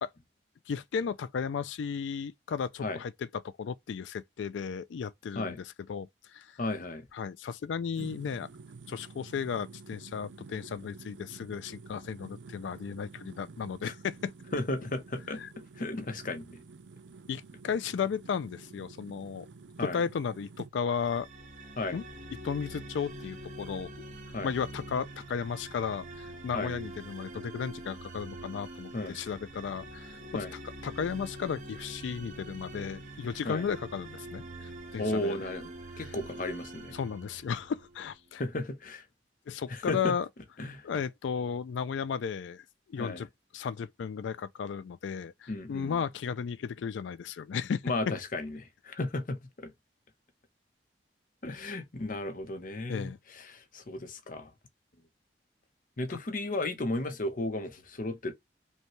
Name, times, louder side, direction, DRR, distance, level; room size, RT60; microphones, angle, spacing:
voice 1, 0.7-5.6 5.9-6.6 7.1-8.5 8.9-14.3 15.4-15.5 17.3-19.5 19.8-21.3 21.9-22.0 22.4-23.9 24.4-30.4 30.8-35.4 36.0-36.1 36.9-38.4 39.5-40.3 40.8-43.3 43.5-47.9 52.9-53.2 56.1-56.2, left 6 dB, 85° left, 0.4 m, -34 dB
voice 2, 6.6-7.1 13.8-13.9 14.5-16.6 19.8-20.0 21.8-22.0 24.3-24.5 26.5-26.7 28.9-29.2 30.3-30.5 33.4-33.6 35.0-37.0 38.3-39.0 39.7-40.1 40.6-40.8 43.0-43.2 45.5-46.0 47.8-49.7 51.4-54.5 56.0-58.3, left 2 dB, 45° left, 0.8 m, -34 dB
sound 1, 7.9-20.7, right 4 dB, 85° right, 0.5 m, -50 dB
sound 2, 20.9-38.0, right 1 dB, 45° right, 1.1 m, -45 dB
5.4 x 2.3 x 3.0 m
head